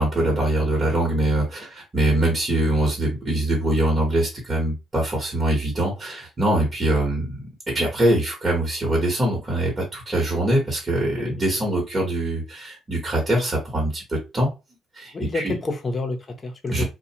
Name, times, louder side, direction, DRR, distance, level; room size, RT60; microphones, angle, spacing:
voice 1, 0.0-7.4 7.7-14.5 14.9-15.5 16.7-16.8, right 1 dB, 30° right, 1.2 m, -23 dB
voice 2, 15.1-16.8, left 2 dB, 35° left, 0.8 m, -29 dB
2.5 x 2.2 x 2.8 m
cardioid pair, 90°, 0 cm